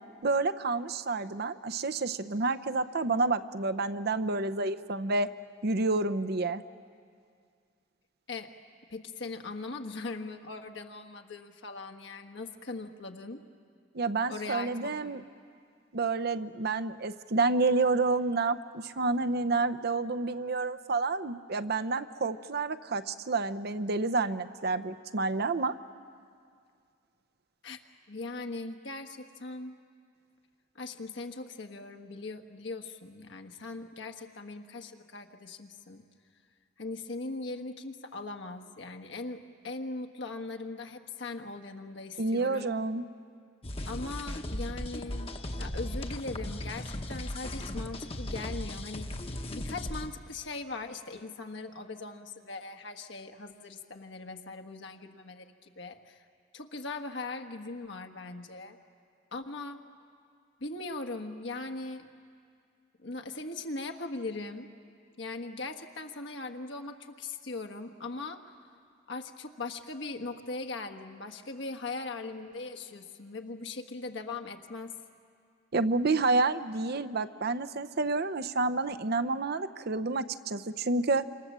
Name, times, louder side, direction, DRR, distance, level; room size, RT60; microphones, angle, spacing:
voice 1, 0.2-5.3 5.6-6.6 13.9-15.2 15.9-25.7 42.2-43.0 75.7-81.3, right 3 dB, 55° right, 12 dB, 0.8 m, -29 dB
voice 2, 8.9-13.4 14.3-15.3 27.6-27.8 28.1-29.8 30.7-36.0 36.8-42.7 43.9-45.3 45.6-49.2 49.5-56.3 56.5-58.8 59.3-59.8 60.6-62.1 63.0-64.7 65.2-68.4 69.1-74.9, left 3 dB, 70° left, 5 dB, 1.4 m, -40 dB
sound 1, 43.6-50.1, left 1 dB, 30° left, 1.1 m, -37 dB
27.0 x 26.5 x 7.4 m, 2.2 s
head